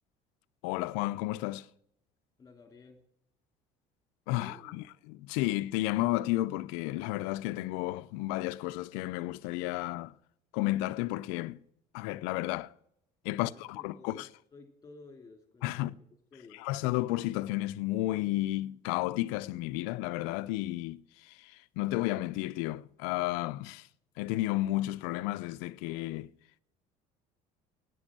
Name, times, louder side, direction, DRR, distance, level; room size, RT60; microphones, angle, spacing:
voice 1, 0.6-1.7 4.3-10.1 10.5-11.6 11.9-12.7 13.2-14.3 15.6-15.9 16.6-23.9 24.2-26.3, left 17 dB, 85° left, 0.5 m, -32 dB
voice 2, 2.4-3.0 4.3-4.8 13.3-15.9 16.3-16.7, left 3 dB, 20° left, 2.8 m, -54 dB
9.8 x 9.5 x 7.5 m
cardioid pair, 120°, 15 cm